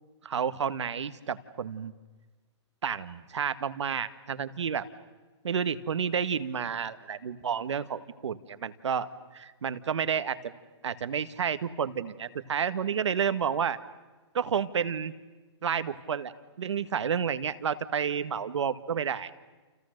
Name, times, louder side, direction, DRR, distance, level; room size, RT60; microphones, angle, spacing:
voice 1, 0.2-1.9 2.8-4.9 5.4-9.1 9.3-10.5 10.8-13.8 14.3-15.1 15.6-19.3, right 7 dB, 75° right, 12 dB, 1.6 m, -30 dB
29.5 x 29.5 x 6.6 m, 1.2 s
hypercardioid pair, 155°, 15 cm